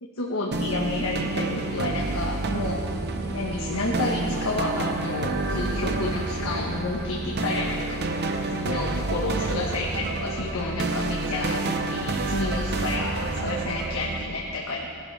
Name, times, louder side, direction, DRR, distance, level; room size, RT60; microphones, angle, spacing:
voice 1, 0.0-2.9 3.3-8.0 8.5-14.9, left 2 dB, 85° left, -2 dB, 1.2 m, -30 dB
sound 1, 0.5-14.2, right 2 dB, 50° right, 0.9 m, -29 dB
17.5 x 11.0 x 3.3 m, 2.8 s
head